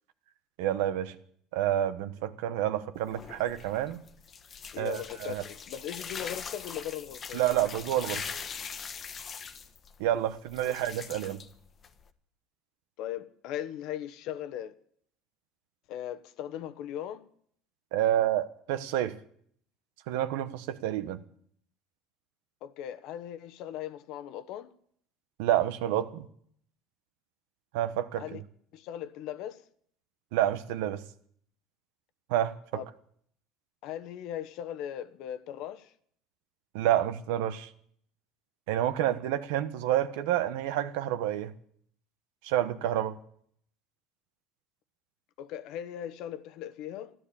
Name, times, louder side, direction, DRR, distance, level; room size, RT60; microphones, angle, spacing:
voice 1, 0.6-1.1 1.5-4.0 4.8-5.4 7.3-8.2 10.0-11.4 17.9-19.2 20.1-21.2 25.4-26.3 27.7-28.2 30.3-31.0 32.3-32.8 36.7-37.7 38.7-41.5 42.4-43.2, right 12 dB, 85° right, 1.1 m, -29 dB
sound 1, 2.9-12.1, left 6 dB, 35° left, 1.2 m, -42 dB
voice 2, 4.7-7.4 13.0-14.8 15.9-17.3 22.6-24.7 28.2-28.4 28.7-29.6 32.7-32.8 33.8-35.9 45.4-47.1, left 11 dB, 70° left, 1.1 m, -38 dB
13.5 x 12.5 x 8.6 m
supercardioid pair, 115°, 0 cm